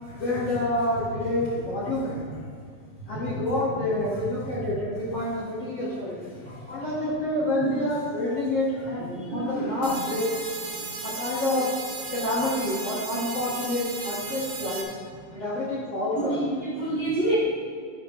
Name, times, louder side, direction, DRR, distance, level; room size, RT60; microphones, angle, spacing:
voice 1, 0.1-2.2 3.1-6.2 6.7-9.1 9.3-10.2 11.0-11.7 12.1-14.9 15.3-16.4, left 1 dB, 45° left, -8 dB, 2.4 m, -28 dB
voice 2, 3.0-3.4 3.9-4.0 4.4-4.7 6.4-6.8 7.4-7.9 9.0-10.0 10.7-10.9 16.2-17.4, right 2 dB, 35° right, -8 dB, 2.2 m, -30 dB
sound 1, 9.8-14.8, right 4 dB, 55° right, 2.0 m, -35 dB
11.5 x 11.0 x 3.3 m, 2.2 s
omnidirectional pair, 4.9 m